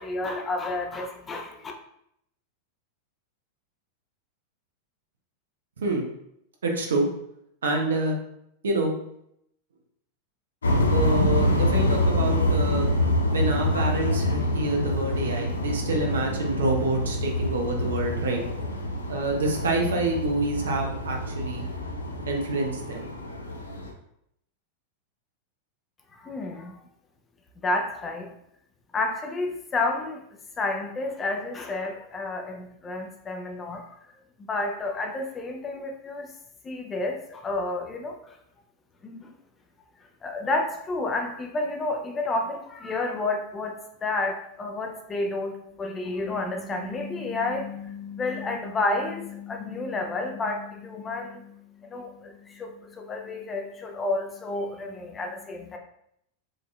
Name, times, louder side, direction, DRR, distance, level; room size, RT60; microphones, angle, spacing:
voice 1, 0.0-1.7 26.2-26.8 27.6-28.3 28.9-30.2 30.6-33.8 34.4-36.3 36.6-38.2 39.0-39.3 40.2-45.5 45.8-51.5 51.9-55.8, left 2 dB, 20° left, 2 dB, 0.6 m, -30 dB
voice 2, 6.6-7.1 7.6-8.2 8.6-8.9 10.9-12.9 13.3-18.4 19.1-21.7 22.3-23.1, right 2 dB, 65° right, 1 dB, 0.7 m, -27 dB
sound 1, 10.6-23.9, left 1 dB, 70° left, 0.6 m, -26 dB
5.0 x 2.7 x 2.3 m, 0.75 s
figure-of-eight pair, 90°, 0 cm